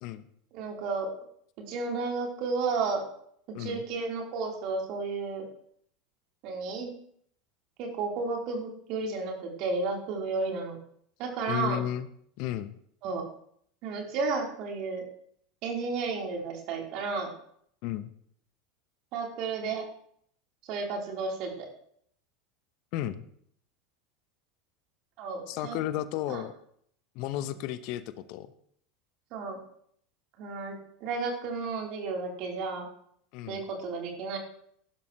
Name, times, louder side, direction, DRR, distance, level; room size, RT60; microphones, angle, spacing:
voice 1, 0.5-1.1 1.7-3.0 3.6-5.5 6.4-6.9 7.8-10.8 11.2-11.8 13.0-13.3 13.8-15.0 15.6-17.3 19.1-19.8 20.6-21.7 25.2-25.8 26.3-26.4 29.3-29.6 30.4-32.9 33.5-34.4, right 4 dB, 55° right, 0 dB, 3.8 m, -32 dB
voice 2, 11.5-12.1 12.4-12.8 17.8-18.1 22.9-23.2 25.5-26.5 27.1-28.5 33.3-33.6, left 12 dB, 55° left, 13 dB, 0.8 m, -33 dB
16.0 x 12.0 x 3.2 m, 0.64 s
figure-of-eight pair, 80°, 0 cm